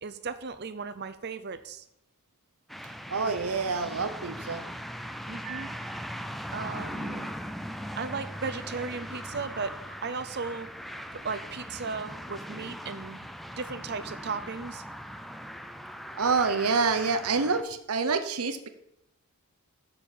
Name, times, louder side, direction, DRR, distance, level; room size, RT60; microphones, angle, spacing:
voice 1, 0.0-1.8 5.3-7.3 8.0-10.7 11.1-13.3 13.6-14.8, right 5 dB, 50° right, 11 dB, 0.7 m, -36 dB
sound 1, 2.7-17.6, equal, ahead, 0.4 m, -40 dB
voice 2, 3.1-4.6 16.2-18.7, right 4 dB, 80° right, 9 dB, 0.9 m, -27 dB
6.9 x 6.6 x 7.3 m, 0.78 s
head